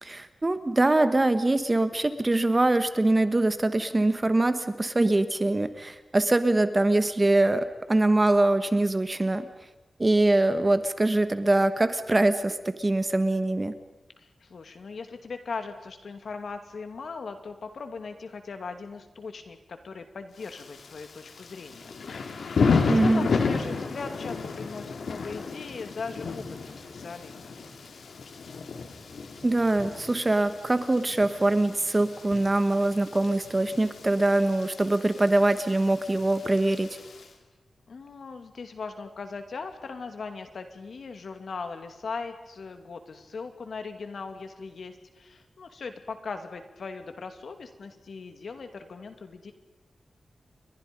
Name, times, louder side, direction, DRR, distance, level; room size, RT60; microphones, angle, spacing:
voice 1, 0.0-9.4 10.0-13.7 22.9-23.3 29.4-37.0, right 2 dB, 20° right, 11 dB, 1.3 m, -23 dB
voice 2, 14.2-21.9 22.3-27.6 37.9-49.5, left 4 dB, 65° left, 7 dB, 2.5 m, -39 dB
Thunder / Rain, 20.4-37.3, left 4 dB, 85° left, 2.6 m, -33 dB
29.5 x 23.0 x 5.3 m, 1.2 s
wide cardioid pair, 140°, 0 cm